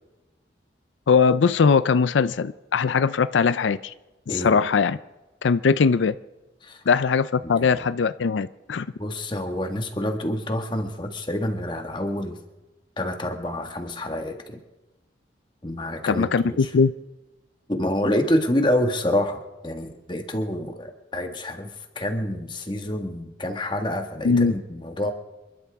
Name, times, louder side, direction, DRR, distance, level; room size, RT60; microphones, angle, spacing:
voice 1, 1.1-3.9 4.3-5.0 5.4-6.1 6.9-8.9 16.1-16.9 24.2-24.5, left 5 dB, 90° left, 0.5 m, -20 dB
voice 2, 4.3-4.6 6.6-6.8 7.4-7.9 9.0-12.4 13.0-14.6 15.6-16.7 17.7-25.1, left 1 dB, 25° left, 1.6 m, -27 dB
27.5 x 12.5 x 3.6 m
head